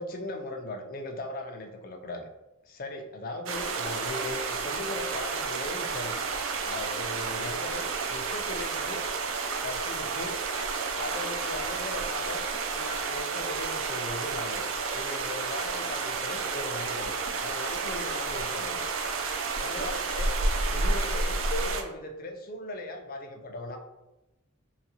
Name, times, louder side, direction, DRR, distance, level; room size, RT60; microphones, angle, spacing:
voice 1, 0.0-2.3 2.6-6.2 6.6-9.1 9.6-10.4 10.9-14.7 14.9-17.1 17.4-18.9 19.6-20.3 20.7-23.8, left 1 dB, 40° left, 4 dB, 0.4 m, -38 dB
sound 1, 3.5-21.8, right 4 dB, 65° right, 0.4 m, -31 dB
3.8 x 2.2 x 2.9 m, 0.96 s
head